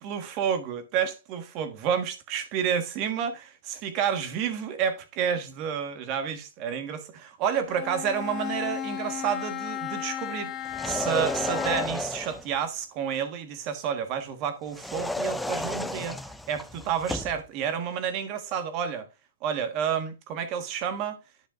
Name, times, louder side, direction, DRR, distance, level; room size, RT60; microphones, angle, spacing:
voice 1, 0.0-10.5 10.8-16.1 16.5-19.1 19.4-21.2, right 8 dB, 35° right, 1.4 m, -30 dB
Bowed string instrument, 7.7-12.1, left 9 dB, 20° left, 0.9 m, -35 dB
sound 1, 10.6-12.5 14.7-17.4, left 1 dB, 5° left, 0.4 m, -32 dB
10.5 x 6.7 x 2.5 m
hypercardioid pair, 150°, 0 cm